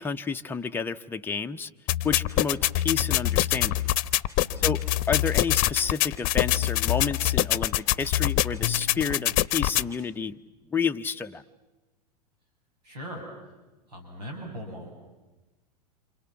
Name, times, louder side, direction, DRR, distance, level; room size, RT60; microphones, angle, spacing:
voice 1, 0.0-1.7 2.0-3.9 4.6-4.8 5.1-10.4 10.7-11.4, left 5 dB, 10° left, 5 dB, 0.8 m, -30 dB
sound 1, 1.9-9.9, left 15 dB, 40° left, 0.9 m, -25 dB
voice 2, 4.4-4.8 12.8-13.2 13.9-14.9, equal, 75° right, 2 dB, 7.3 m, -39 dB
28.5 x 27.5 x 7.1 m, 1.1 s
hypercardioid pair, 100°, 21 cm